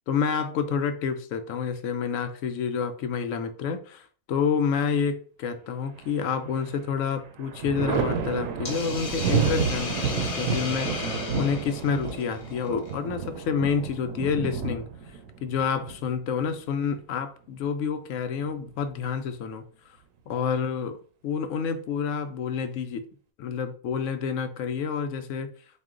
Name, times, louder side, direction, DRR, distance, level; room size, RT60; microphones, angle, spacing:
voice 1, 0.1-14.8 15.4-19.6 20.3-21.0 21.2-23.1 23.4-25.5, left 6 dB, 70° left, 0.9 m, -28 dB
Thunder, 6.0-6.7 7.1-16.7 18.2-19.0, right 6 dB, 70° right, 0.9 m, -31 dB
Hiss, 8.6-12.9, left 3 dB, 45° left, 0.4 m, -35 dB
4.4 x 2.1 x 3.6 m
omnidirectional pair, 1.5 m